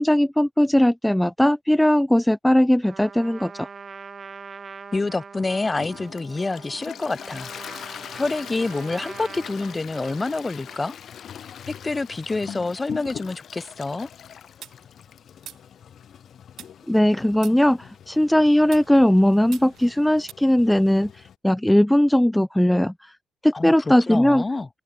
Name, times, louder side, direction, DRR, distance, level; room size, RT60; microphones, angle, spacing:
voice 1, 0.0-3.7 16.9-23.1 23.4-24.4, left 1 dB, 5° left, 0.6 m, -19 dB
Trumpet, 2.8-10.9, right 5 dB, 40° right, 6.4 m, -43 dB
voice 2, 4.9-7.5 7.8-10.9 11.7-14.1 23.5-24.7, left 3 dB, 20° left, 1.0 m, -27 dB
Toilet flush, 5.8-21.4, left 9 dB, 60° left, 1.2 m, -42 dB
sound 1, 14.6-16.2 16.6-18.2 18.6-20.3, right 11 dB, 70° right, 2.9 m, -46 dB
open air
cardioid pair, 90°, 0 cm